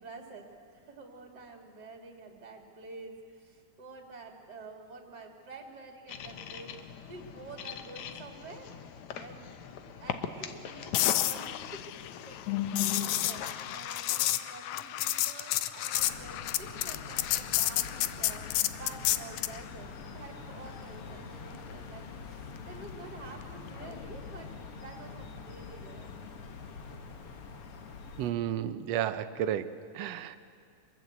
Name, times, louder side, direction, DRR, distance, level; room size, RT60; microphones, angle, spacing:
voice 1, 0.0-8.7 9.1-11.8 12.3-24.5 24.8-26.1, right 3 dB, 35° right, 2 dB, 2.6 m, -49 dB
sound 1, 6.1-13.8, left 9 dB, 70° left, 2.4 m, -39 dB
sound 2, 10.9-19.6 23.8-24.0, left 14 dB, 90° left, 2.2 m, -31 dB
sound 3, 16.0-28.3, left 5 dB, 55° left, 2.2 m, -45 dB
voice 2, 28.2-30.4, right 10 dB, 70° right, 11 dB, 1.9 m, -32 dB
26.0 x 21.5 x 8.1 m, 2.4 s
omnidirectional pair, 3.4 m